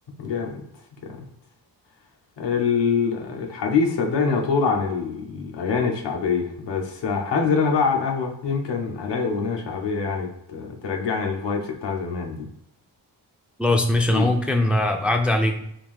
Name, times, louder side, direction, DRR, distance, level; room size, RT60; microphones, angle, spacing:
voice 1, 0.2-0.6 2.4-12.5 14.1-14.3, left 5 dB, 90° left, 1 dB, 0.9 m, -24 dB
voice 2, 13.6-15.6, left 1 dB, 5° right, 4 dB, 0.3 m, -21 dB
3.5 x 2.6 x 3.5 m, 0.77 s
cardioid pair, 90°, 41 cm